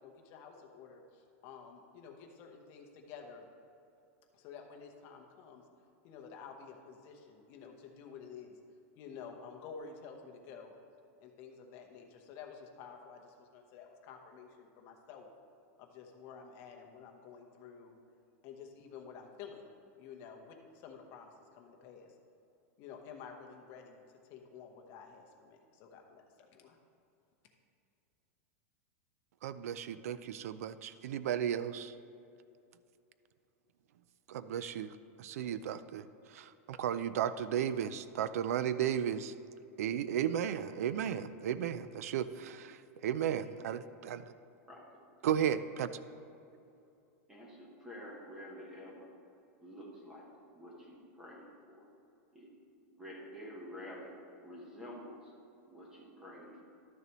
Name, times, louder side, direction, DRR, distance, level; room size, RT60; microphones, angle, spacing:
voice 1, 0.0-3.4 4.3-5.6 6.0-8.6 8.9-10.7 11.2-15.3 15.8-18.0 18.4-19.7 20.0-22.1 22.8-24.0 24.3-26.8, left 6 dB, 30° left, 2 dB, 0.9 m, -51 dB
voice 2, 29.4-31.9 34.3-34.9 35.2-36.0 36.3-39.3 39.8-44.2 45.2-45.9, right 9 dB, 80° right, 13 dB, 0.4 m, -34 dB
voice 3, 47.3-49.1 49.6-50.3 50.5-51.9 52.3-52.5 52.9-55.3 55.7-56.6, equal, 5° right, -3 dB, 1.0 m, -49 dB
12.5 x 6.7 x 3.0 m, 2.7 s
supercardioid pair, 175°, 8 cm